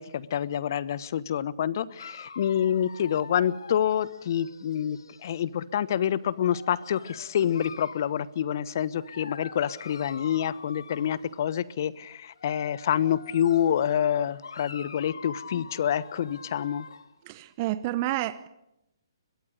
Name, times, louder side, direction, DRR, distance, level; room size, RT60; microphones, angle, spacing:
voice 1, 0.0-16.9, left 9 dB, 50° left, 19 dB, 1.1 m, -27 dB
Dog, 2.0-5.4 6.2-8.2 8.9-11.6 12.2-17.1, left 4 dB, 70° left, 2.4 m, -45 dB
voice 2, 17.3-18.5, right 15 dB, 35° right, 14 dB, 1.0 m, -29 dB
23.5 x 22.5 x 6.6 m, 0.86 s
figure-of-eight pair, 135°, 2 cm